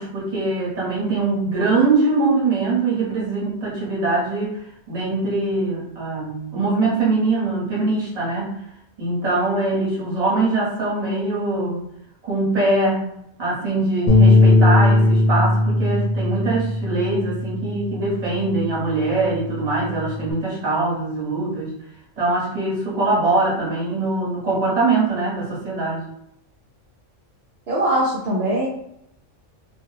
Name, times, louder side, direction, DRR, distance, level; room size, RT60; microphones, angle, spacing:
voice 1, 0.0-4.6 4.9-8.5 9.0-11.8 12.2-13.0 13.4-21.7 22.2-26.0, right 3 dB, 35° right, -5 dB, 1.0 m, -22 dB
sound 1, 14.1-20.3, left 2 dB, 60° left, 0.5 m, -19 dB
voice 2, 27.7-28.7, right 1 dB, 60° right, -5 dB, 0.8 m, -21 dB
2.6 x 2.3 x 3.2 m, 0.76 s
omnidirectional pair, 1.3 m